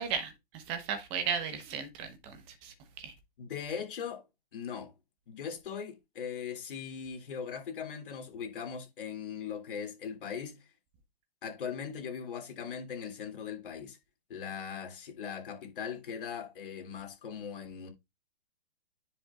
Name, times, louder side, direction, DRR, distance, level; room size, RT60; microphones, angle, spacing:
voice 1, 0.0-2.4 2.6-3.1, right 7 dB, 15° right, 1.0 m, -35 dB
voice 2, 3.4-4.3 4.5-4.9 5.3-10.7 11.4-14.0 14.3-17.9, left 7 dB, 55° left, 2.9 m, -39 dB
9.8 x 5.3 x 2.4 m
hypercardioid pair, 165°, 31 cm